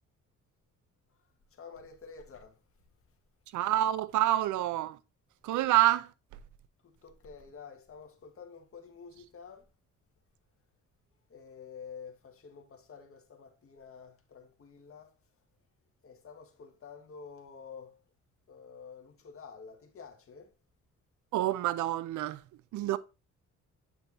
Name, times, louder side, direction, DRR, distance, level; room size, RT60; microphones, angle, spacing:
voice 1, 1.1-2.6 6.8-9.7 11.3-15.2 16.0-18.0 18.5-20.6, left 5 dB, 45° left, 1.8 m, -49 dB
voice 2, 3.5-5.0 5.4-6.1 21.3-22.4 22.7-23.0, right 14 dB, 80° right, 0.5 m, -27 dB
9.0 x 5.4 x 2.7 m
cardioid pair, 90°, 30 cm